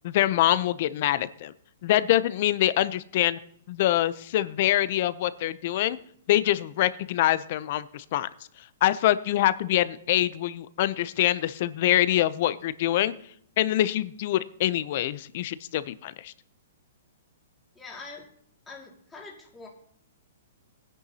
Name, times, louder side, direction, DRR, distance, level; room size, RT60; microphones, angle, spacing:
voice 1, 0.0-1.5 1.8-3.4 3.7-6.0 6.3-8.3 8.8-13.1 13.6-16.3, left 13 dB, 45° left, 16 dB, 0.6 m, -25 dB
voice 2, 17.7-18.3 18.7-19.7, left 3 dB, 10° left, -3 dB, 2.3 m, -44 dB
17.5 x 10.0 x 2.8 m, 0.65 s
hypercardioid pair, 155°, 0 cm